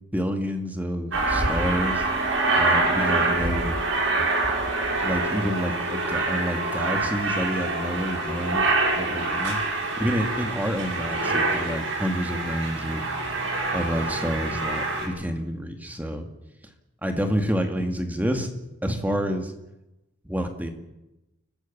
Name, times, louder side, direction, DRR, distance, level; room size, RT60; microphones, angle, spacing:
voice 1, 0.1-2.1 2.5-3.8 4.2-4.3 5.0-9.6 10.0-13.0 13.7-16.3 17.0-18.5 18.8-19.5 20.2-20.7, equal, 10° right, 5 dB, 2.1 m, -28 dB
Aircraft, 1.1-15.1, right 2 dB, 85° right, 7.3 m, -25 dB
29.5 x 15.5 x 7.4 m, 0.96 s
head